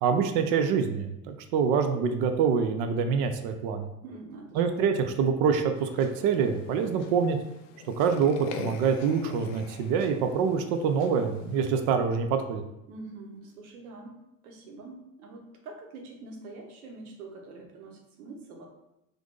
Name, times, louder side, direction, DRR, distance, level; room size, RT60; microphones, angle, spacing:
voice 1, 0.0-3.9 4.6-7.4 8.0-12.6, right 6 dB, 50° right, 6 dB, 0.4 m, -25 dB
voice 2, 4.0-4.6 12.9-18.7, right 3 dB, 70° right, 2 dB, 0.8 m, -45 dB
sound 1, 5.7-11.9, left 6 dB, 60° left, 0.5 m, -44 dB
2.6 x 2.5 x 3.7 m, 0.88 s
figure-of-eight pair, 70°, 45 cm